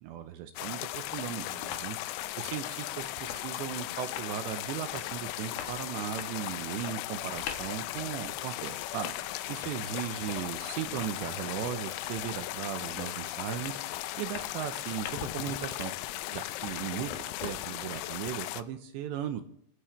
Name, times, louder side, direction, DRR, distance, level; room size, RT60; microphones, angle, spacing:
voice 1, 0.0-15.9 16.3-19.4, right 10 dB, 80° right, 8 dB, 2.9 m, -37 dB
sound 1, 0.6-18.6, left 15 dB, 80° left, 2.9 m, -37 dB
sound 2, 1.5-1.9 2.2-17.7, left 7 dB, 65° left, 2.8 m, -46 dB
23.0 x 10.5 x 3.3 m, 0.66 s
omnidirectional pair, 5.5 m